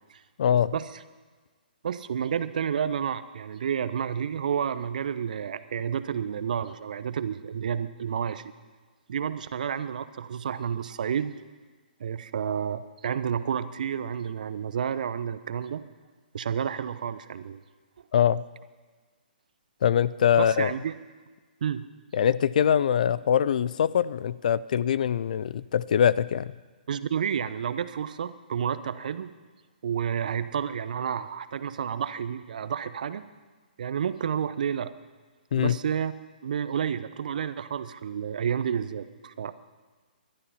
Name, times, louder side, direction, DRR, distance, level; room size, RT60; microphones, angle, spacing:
voice 1, 0.4-0.7 18.1-18.4 19.8-20.7 22.1-26.5 35.5-35.8, left 9 dB, 55° left, 19 dB, 0.5 m, -23 dB
voice 2, 1.8-8.5 9.1-11.3 12.0-15.8 16.3-17.6 20.4-20.9 21.6-21.8 26.9-29.3 29.8-33.2 33.8-34.9 35.6-36.1 36.4-39.5, right 8 dB, 55° right, 13 dB, 0.8 m, -30 dB
20.5 x 12.0 x 5.7 m, 1.4 s
figure-of-eight pair, 130°, 5 cm